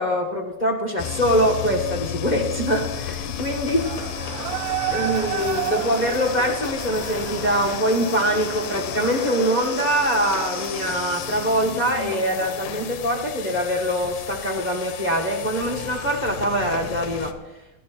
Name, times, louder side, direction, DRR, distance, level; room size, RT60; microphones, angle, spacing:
voice 1, 0.0-3.8 4.9-17.3, equal, 50° left, -2 dB, 0.5 m, -23 dB
sound 1, 1.0-17.3, left 9 dB, 90° left, 2.5 m, -33 dB
sound 2, 3.8-10.9, right 14 dB, 80° right, 1.6 m, -32 dB
sound 3, 4.9-12.9, left 4 dB, 65° left, 2.9 m, -41 dB
15.0 x 11.0 x 6.2 m, 0.97 s
omnidirectional pair, 3.7 m